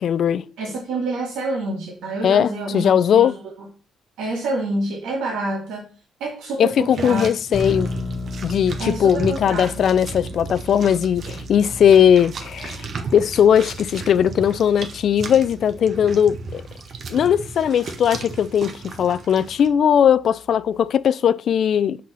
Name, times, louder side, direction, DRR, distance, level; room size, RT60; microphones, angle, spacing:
voice 1, 0.0-0.4 2.2-3.4 6.6-7.9 8.4-12.8 13.1-16.6 17.1-22.0, left 8 dB, 65° left, 0.3 m, -18 dB
voice 2, 0.6-3.3 4.2-5.8 6.2-7.3 8.8-9.8, right 2 dB, 90° right, 1.5 m, -27 dB
sound 1, 6.7-19.7, right 4 dB, 55° right, 0.9 m, -35 dB
sound 2, 7.5-21.0, left 2 dB, 15° left, 0.8 m, -37 dB
6.2 x 4.1 x 4.1 m
cardioid pair, 90°, 0 cm